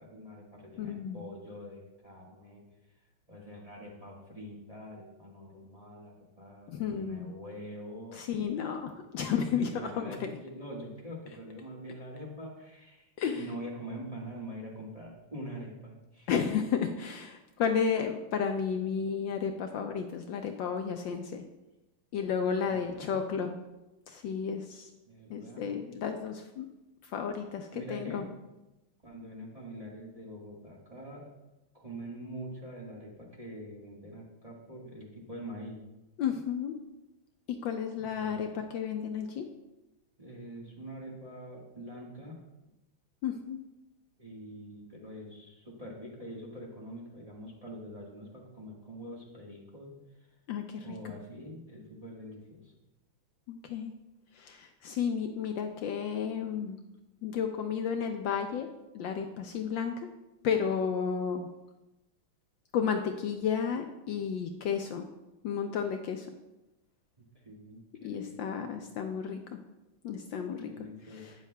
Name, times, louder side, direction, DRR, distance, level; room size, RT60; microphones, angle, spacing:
voice 1, 0.0-2.6 3.3-8.2 9.2-13.1 13.3-16.3 22.6-23.1 25.1-25.6 27.7-28.3 29.0-31.3 31.7-35.8 38.0-38.4 40.2-42.4 44.2-49.9 50.8-52.7 67.2-68.7 70.6-71.3, equal, 20° right, -3 dB, 1.4 m, -44 dB
voice 2, 0.8-1.2 6.7-7.3 8.1-10.3 13.2-13.4 16.3-21.3 22.1-23.6 24.1-24.9 25.3-26.7 27.0-28.2 36.2-36.7 37.6-39.4 43.2-43.6 50.5-51.1 53.5-53.9 54.3-56.8 57.2-58.7 58.9-59.9 60.4-61.5 62.7-65.0 65.4-66.3 68.0-69.4 70.0-70.7 71.1-71.3, left 7 dB, 70° left, 5 dB, 1.2 m, -32 dB
12.0 x 9.2 x 2.2 m, 0.98 s
omnidirectional pair, 2.3 m